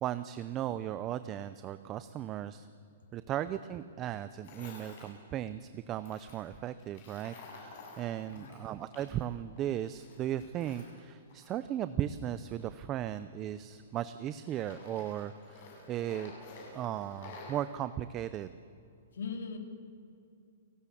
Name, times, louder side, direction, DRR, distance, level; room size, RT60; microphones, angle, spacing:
voice 1, 0.0-2.7 3.1-16.3 16.7-18.5, right 11 dB, 15° right, 12 dB, 0.5 m, -36 dB
Tools, 4.4-5.1 6.0-9.3 9.6-11.8 12.5-14.1 14.5-17.6, left 3 dB, 35° left, 7.9 m, -51 dB
voice 2, 8.2-8.6 19.1-19.6, left 5 dB, 80° left, 5 dB, 4.0 m, -40 dB
29.5 x 19.5 x 8.5 m, 2.5 s
hypercardioid pair, 180°, 0 cm